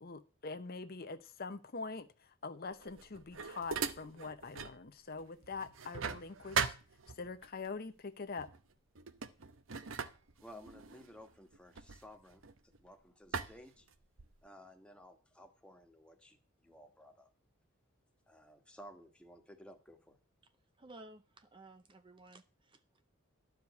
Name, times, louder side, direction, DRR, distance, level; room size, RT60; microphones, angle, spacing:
voice 1, 0.0-6.7 7.1-8.5, left 4 dB, 45° left, 0.7 m, -44 dB
sound 1, 2.8-4.8 5.2-7.5 8.4-8.6 8.9-12.8 13.3-14.5, right 5 dB, 70° right, 0.8 m, -40 dB
voice 2, 10.4-13.9 14.4-17.3 18.3-20.2, equal, 5° left, 1.3 m, -56 dB
voice 3, 20.8-23.0, right 2 dB, 25° right, 0.6 m, -56 dB
12.0 x 5.0 x 8.2 m
head